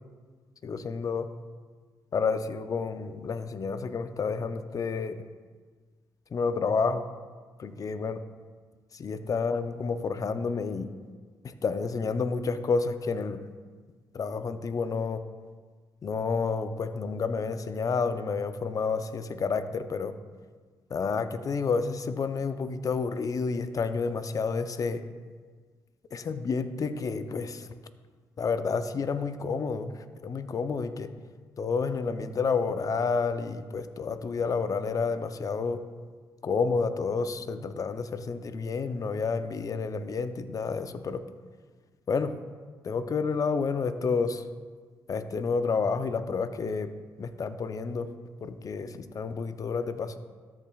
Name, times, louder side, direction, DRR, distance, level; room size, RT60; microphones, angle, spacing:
voice 1, 0.6-1.3 2.1-5.2 6.3-7.1 7.6-8.2 8.9-10.9 11.4-13.4 14.1-15.2 16.0-20.1 20.9-25.0 26.1-27.7 28.4-31.1 31.6-35.8 36.4-41.2 42.1-42.3 42.8-44.4 45.1-46.9 47.2-48.1 48.4-50.2, left 5 dB, 45° left, 10 dB, 0.6 m, -30 dB
13.0 x 7.2 x 2.4 m, 1.5 s
supercardioid pair, 65°, 8 cm